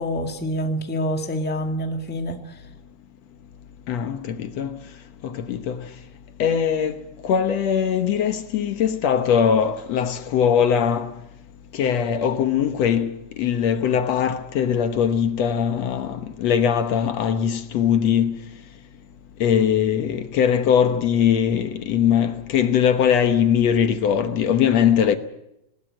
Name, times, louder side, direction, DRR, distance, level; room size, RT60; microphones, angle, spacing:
voice 1, 0.0-2.6, equal, 5° left, 1.5 m, -27 dB
voice 2, 3.9-4.7 5.2-5.8 6.4-7.0 7.2-11.1 11.7-13.1 13.4-18.3 19.4-25.2, left 8 dB, 70° left, 2.2 m, -21 dB
20.0 x 20.0 x 7.7 m
omnidirectional pair, 3.3 m